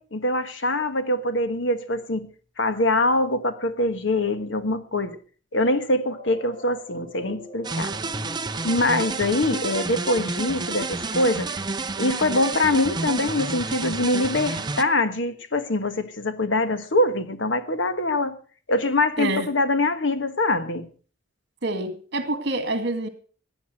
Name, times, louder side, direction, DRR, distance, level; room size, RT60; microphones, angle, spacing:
voice 1, 0.0-2.3 2.6-5.2 5.5-7.9 8.6-11.6 12.0-18.3 18.7-20.9, left 2 dB, 65° left, 1.4 m, -24 dB
sound 1, 6.0-15.0, left 2 dB, 30° left, 7.9 m, -47 dB
sound 2, 7.6-14.8, right 3 dB, 20° right, 0.7 m, -30 dB
voice 2, 21.6-23.1, right 2 dB, 60° right, 2.3 m, -27 dB
15.0 x 9.7 x 6.4 m
head